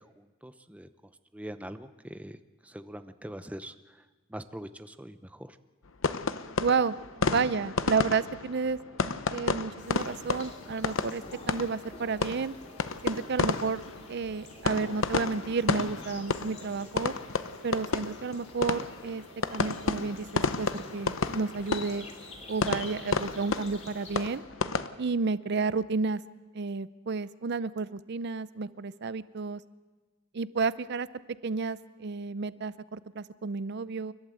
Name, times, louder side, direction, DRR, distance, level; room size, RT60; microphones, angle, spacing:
voice 1, 0.2-0.9 1.3-2.4 2.6-3.7 4.3-5.6, right 1 dB, 5° right, 10 dB, 0.7 m, -42 dB
sound 1, 6.0-24.9, left 4 dB, 70° left, 0.8 m, -32 dB
sound 2, 6.2-25.0, right 1 dB, 30° right, 6.5 m, -55 dB
voice 2, 6.6-8.8 9.3-12.5 13.0-13.8 14.1-17.1 17.6-19.2 19.5-22.1 22.5-24.4 25.0-26.2 26.5-29.6 30.3-31.1 31.4-34.1, right 4 dB, 55° right, 16 dB, 0.5 m, -31 dB
sound 3, 9.8-24.4, left 3 dB, 35° left, 2.8 m, -50 dB
29.0 x 12.0 x 7.8 m, 1.3 s
head